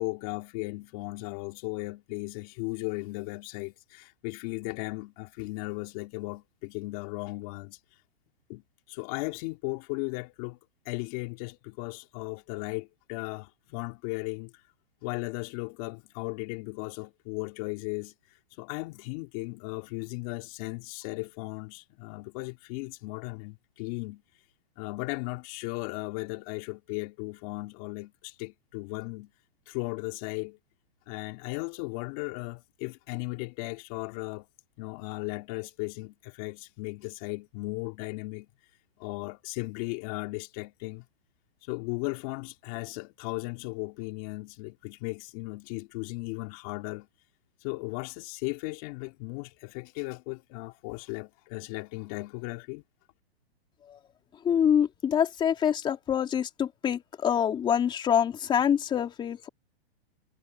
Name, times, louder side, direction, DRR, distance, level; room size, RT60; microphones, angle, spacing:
voice 1, 0.0-7.8 8.5-8.6 8.9-10.6 10.8-14.6 15.0-24.2 24.8-29.3 29.7-30.6 31.1-34.5 34.8-38.5 39.0-41.0 41.6-47.1 47.6-52.8, left 25 dB, 35° left, 3.2 m, -36 dB
voice 2, 54.4-59.5, left 8 dB, 15° left, 3.6 m, -26 dB
hypercardioid pair, 155°, 32 cm